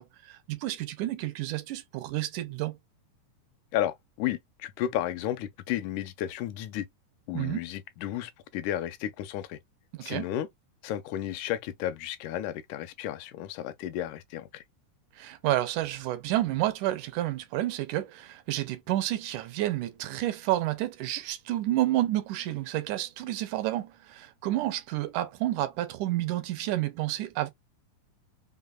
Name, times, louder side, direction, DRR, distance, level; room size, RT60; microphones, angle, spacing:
voice 1, 0.0-2.8 7.3-7.6 9.9-10.3 15.2-27.5, right 15 dB, 90° right, 2.1 m, -30 dB
voice 2, 3.7-6.9 7.3-9.6 10.0-10.5 10.8-14.6, left 12 dB, 85° left, 2.0 m, -33 dB
5.2 x 2.1 x 2.2 m
omnidirectional pair, 3.5 m